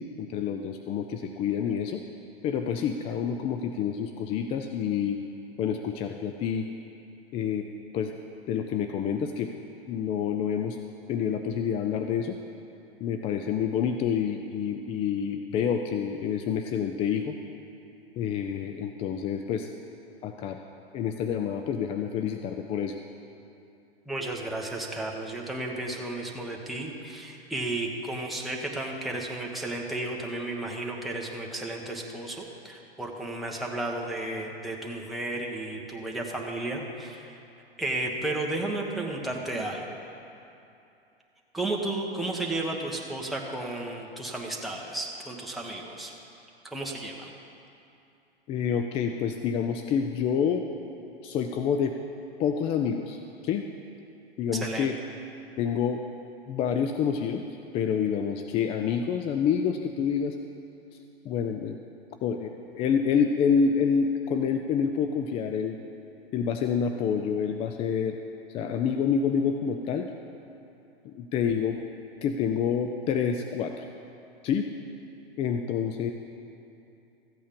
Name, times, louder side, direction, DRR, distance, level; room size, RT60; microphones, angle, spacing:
voice 1, 0.0-2.0 2.4-5.2 5.6-6.7 7.3-7.7 7.9-8.1 8.5-9.5 9.9-10.8 11.1-12.4 13.0-17.4 18.2-19.7 20.2-20.6 20.9-23.0 48.5-50.7 51.2-51.9 52.4-53.6 54.4-55.0 55.6-56.0 56.5-57.4 57.7-60.4 61.2-61.8 62.2-65.8 66.3-68.2 68.5-70.1 71.0-71.8 72.2-73.9 74.4-74.7 75.4-76.1, left 7 dB, 20° left, 5 dB, 0.4 m, -28 dB
voice 2, 24.1-37.4 37.8-40.0 41.5-46.1 46.7-47.3 54.5-54.9, right 2 dB, ahead, -2 dB, 1.2 m, -33 dB
14.5 x 8.6 x 5.3 m, 2.7 s
figure-of-eight pair, 100°, 30 cm